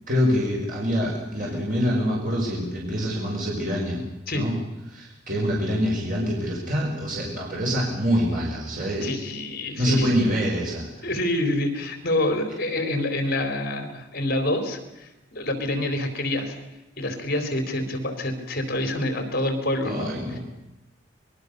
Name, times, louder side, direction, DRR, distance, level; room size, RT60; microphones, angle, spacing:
voice 1, 0.1-4.0 4.3-4.5 4.9-9.1 9.8-11.1 19.8-20.4, equal, 45° right, -3 dB, 5.9 m, -25 dB
voice 2, 9.0-10.1 11.0-16.6 17.0-20.4, left 1 dB, 55° left, 6 dB, 4.0 m, -27 dB
26.0 x 22.0 x 6.8 m, 0.95 s
head